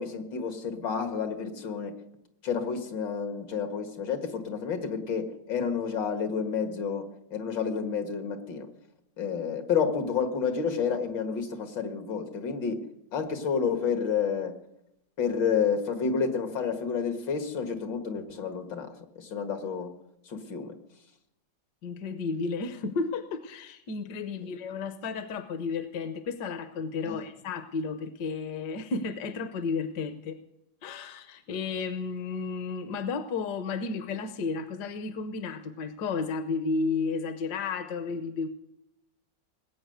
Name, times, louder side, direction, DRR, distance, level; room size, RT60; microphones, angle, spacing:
voice 1, 0.0-1.9 2.4-8.7 9.2-12.8 13.1-14.6 15.2-19.9 20.3-20.7 27.0-27.3, left 6 dB, 85° left, 6 dB, 2.4 m, -30 dB
voice 2, 21.8-30.4 30.8-38.5, left 4 dB, 70° left, 9 dB, 1.4 m, -32 dB
19.5 x 8.7 x 8.0 m, 0.83 s
omnidirectional pair, 1.9 m